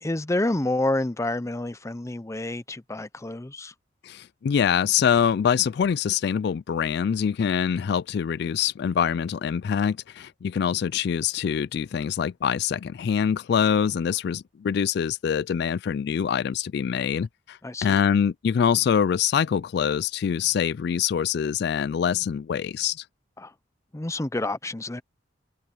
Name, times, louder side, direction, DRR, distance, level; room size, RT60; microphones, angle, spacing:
voice 1, 0.0-3.7 17.6-18.0 23.4-23.5 23.9-25.0, left 2 dB, 15° left, 0.6 m, -28 dB
voice 2, 4.0-23.0, left 7 dB, 60° left, 0.3 m, -24 dB
head